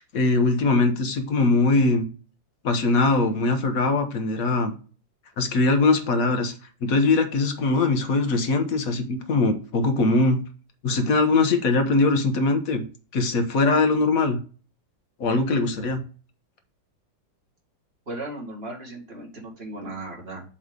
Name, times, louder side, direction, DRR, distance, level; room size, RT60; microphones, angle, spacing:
voice 1, 0.1-2.1 2.6-4.7 5.4-6.5 6.8-10.4 10.8-12.8 13.1-14.4 15.2-16.0, left 3 dB, 55° left, 6 dB, 1.3 m, -21 dB
voice 2, 18.1-20.4, right 2 dB, 35° right, -2 dB, 2.2 m, -36 dB
7.4 x 3.3 x 5.2 m, 0.36 s
omnidirectional pair, 2.0 m